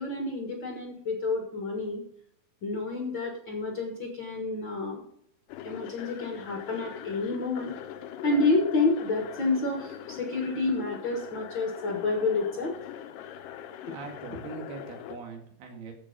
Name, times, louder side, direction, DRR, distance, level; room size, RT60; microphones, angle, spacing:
voice 1, 0.0-2.0 2.6-5.0 5.6-7.7 8.2-12.7, left 3 dB, 50° left, 2 dB, 1.4 m, -29 dB
sound 1, 5.5-15.2, left 10 dB, 75° left, 2.2 m, -42 dB
voice 2, 13.8-15.9, right 4 dB, 80° right, 2 dB, 4.0 m, -41 dB
14.5 x 5.4 x 5.2 m, 0.69 s
omnidirectional pair, 4.5 m